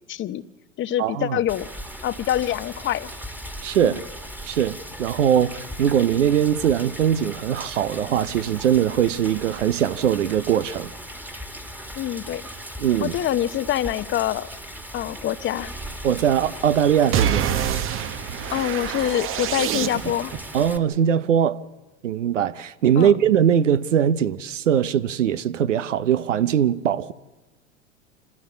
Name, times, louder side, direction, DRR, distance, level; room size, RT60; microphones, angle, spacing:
voice 1, 0.1-0.4 0.8-1.7 2.0-3.1 3.8-4.0 12.0-12.4 13.0-14.5 14.9-15.7 18.5-20.3 23.0-23.1, left 12 dB, 30° left, 0.8 m, -25 dB
voice 2, 1.0-1.4 3.6-4.0 4.4-10.9 12.8-13.2 16.0-17.5 20.5-21.6 22.0-27.1, right 9 dB, 85° right, 0.9 m, -21 dB
Rain, 1.5-20.8, equal, 5° right, 1.7 m, -38 dB
sound 1, 17.1-20.4, right 9 dB, 35° right, 0.9 m, -26 dB
26.0 x 15.0 x 8.2 m
hypercardioid pair, 95°, 36 cm